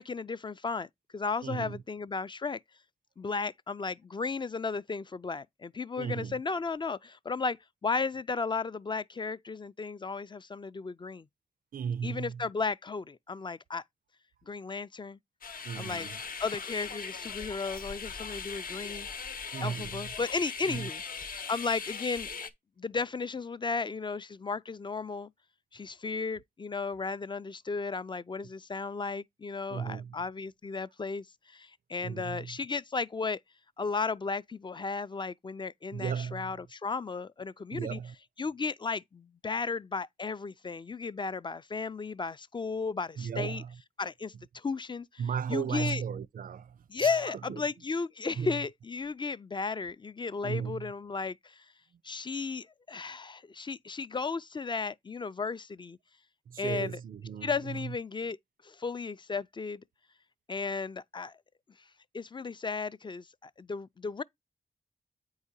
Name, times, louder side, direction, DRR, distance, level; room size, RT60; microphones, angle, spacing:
voice 1, 0.0-2.6 3.2-7.6 7.8-11.3 12.0-13.8 14.5-15.2 15.8-16.1 16.4-19.1 19.6-22.3 22.8-25.3 25.7-33.4 33.8-38.0 38.4-43.6 44.0-45.2 45.5-46.0 46.9-51.6 52.0-56.0 56.6-57.0 57.4-58.4 58.6-59.8 60.5-61.3 62.1-64.2, left 4 dB, 30° left, 0.3 m, -34 dB
voice 2, 1.4-1.8 6.0-6.3 11.7-12.4 15.6-16.2 19.5-20.1 20.7-20.9 29.7-30.2 32.0-32.6 35.9-36.6 37.7-38.1 43.2-43.8 45.2-47.6 48.4-48.6 50.4-50.9 56.5-58.0, right 7 dB, 65° right, 0.4 m, -36 dB
sound 1, 15.4-22.5, left 5 dB, 70° left, 0.8 m, -40 dB
8.1 x 4.8 x 2.7 m
cardioid pair, 65°, 15 cm